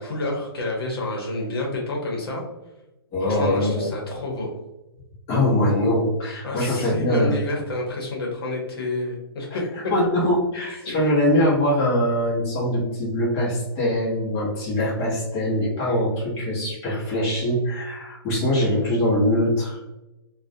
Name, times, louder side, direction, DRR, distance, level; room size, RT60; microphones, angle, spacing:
voice 1, 0.0-2.4 3.2-4.5 6.4-9.6 10.8-11.2, left 2 dB, 70° left, -1 dB, 0.8 m, -29 dB
voice 2, 3.1-3.9 5.3-7.4 9.5-9.6 9.9-19.8, left 1 dB, 25° left, -6 dB, 0.8 m, -22 dB
2.3 x 2.1 x 2.6 m, 0.99 s
hypercardioid pair, 155°, 13 cm